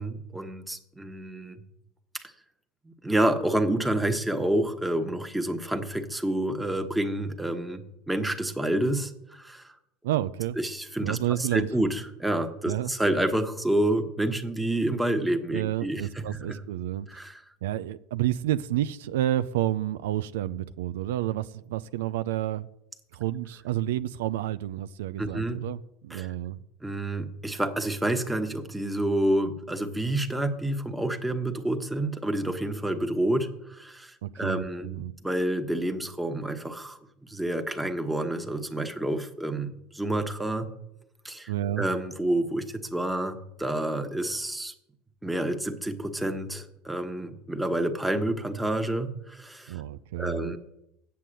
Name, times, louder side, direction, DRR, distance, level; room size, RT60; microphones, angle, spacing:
voice 1, 0.0-1.6 2.1-2.3 2.8-9.7 10.6-16.6 17.1-17.4 25.2-25.6 26.1-26.3 26.8-40.7 41.2-41.5 41.8-44.7 45.2-49.8 50.2-50.6, right 1 dB, 5° right, 1.2 m, -29 dB
voice 2, 10.0-10.6 11.0-11.7 12.6-12.9 15.5-17.1 17.6-22.7 23.1-26.6 34.2-35.1 41.5-41.9 49.7-50.6, right 13 dB, 90° right, 0.4 m, -30 dB
8.4 x 7.6 x 7.7 m
supercardioid pair, 105°, 0 cm